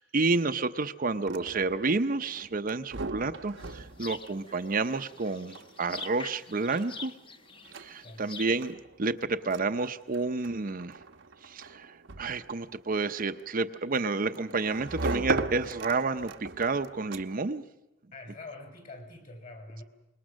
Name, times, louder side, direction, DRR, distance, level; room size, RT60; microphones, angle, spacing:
voice 1, 0.0-7.1 7.8-10.9 11.5-17.6, right 3 dB, 45° right, 8 dB, 0.7 m, -30 dB
sound 1, 1.1-17.6, right 2 dB, 70° right, 1.0 m, -40 dB
sound 2, 3.6-8.7, left 4 dB, 25° left, 1.0 m, -45 dB
voice 2, 18.1-19.8, left 2 dB, 45° left, 5 dB, 4.7 m, -45 dB
25.0 x 21.5 x 6.4 m, 0.93 s
head